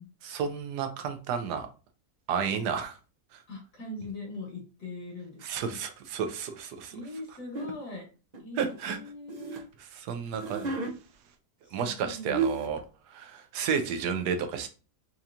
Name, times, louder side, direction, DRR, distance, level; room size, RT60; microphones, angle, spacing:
voice 1, 0.2-1.7 2.3-3.0 3.3-3.4 5.4-7.0 8.6-9.0 9.5-10.7 11.7-12.8 13.1-14.7, right 6 dB, 80° right, 8 dB, 1.2 m, -32 dB
voice 2, 3.5-5.8 6.9-8.1 8.4-9.7 11.6-12.4, left 2 dB, 70° left, -2 dB, 2.0 m, -41 dB
sound 1, 7.5-7.7 8.3-9.6 10.3-10.9 11.9-12.0 12.3-12.8, right 5 dB, 60° right, 0.4 m, -32 dB
4.5 x 2.8 x 2.5 m, 0.34 s
omnidirectional pair, 1.7 m